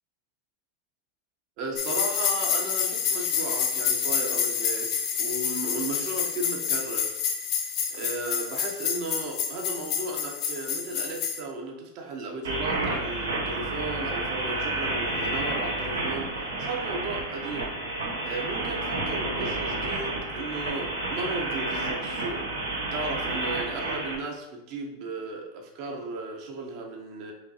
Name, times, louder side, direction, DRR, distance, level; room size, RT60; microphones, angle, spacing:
voice 1, 1.6-4.9 5.2-7.1 7.9-16.3 16.6-17.7 18.2-22.4 22.9-27.3, right 2 dB, 55° right, 1 dB, 1.0 m, -35 dB
sound 1, 1.8-11.4, left 7 dB, 50° left, 0.7 m, -28 dB
sound 2, 12.4-24.1, right 2 dB, 85° right, 0.9 m, -30 dB
5.1 x 3.0 x 2.9 m, 0.95 s
hypercardioid pair, 105°, 0 cm